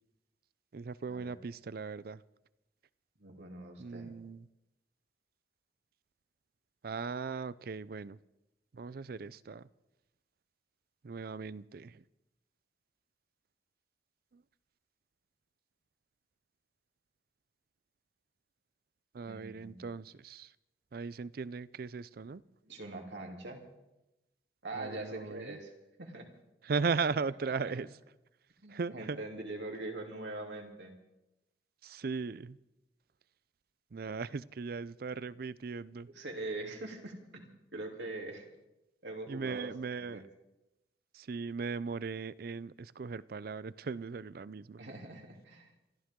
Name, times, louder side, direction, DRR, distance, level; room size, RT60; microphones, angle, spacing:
voice 1, 0.7-2.2 3.8-4.5 6.8-8.2 8.7-9.7 11.0-12.0 14.3-14.4 19.1-20.5 20.9-22.4 24.7-25.6 26.6-27.9 28.7-29.2 31.8-32.6 33.9-36.1 39.3-40.2 41.1-44.8, right 4 dB, 55° right, 18 dB, 0.4 m, -38 dB
voice 2, 3.2-4.1 19.3-19.8 22.6-23.6 24.6-25.7 26.0-26.3 27.4-27.8 28.6-30.9 36.1-38.5 39.0-39.7 40.1-40.2 44.8-45.7, right 2 dB, 80° right, 1 dB, 3.2 m, -43 dB
27.5 x 13.5 x 3.7 m, 0.93 s
head